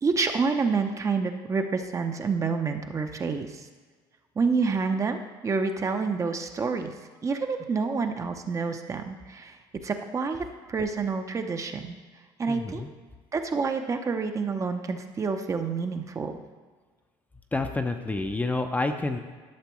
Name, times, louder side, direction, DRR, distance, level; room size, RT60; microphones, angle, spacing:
voice 1, 0.0-3.5 4.4-6.9 7.2-9.6 9.8-12.0 12.4-12.8 13.3-16.3, right 4 dB, 30° right, 6 dB, 0.7 m, -28 dB
voice 2, 12.5-12.9 17.5-19.2, left 2 dB, 15° left, 6 dB, 0.6 m, -28 dB
11.5 x 6.6 x 3.1 m, 1.5 s
cardioid pair, 100°, 11 cm